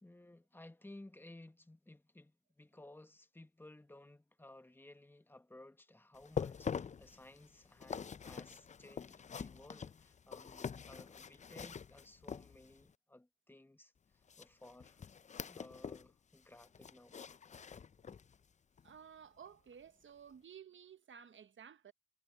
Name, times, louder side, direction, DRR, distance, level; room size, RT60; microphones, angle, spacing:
voice 1, 0.0-15.0 15.5-17.2, left 1 dB, 5° left, 1.3 m, -58 dB
sound 1, 6.1-12.9 14.3-16.1 16.4-18.4 18.8-18.9 19.5-19.6, left 6 dB, 25° left, 0.5 m, -45 dB
voice 2, 18.8-21.9, right 7 dB, 40° right, 1.1 m, -55 dB
cardioid pair, 90°, 30 cm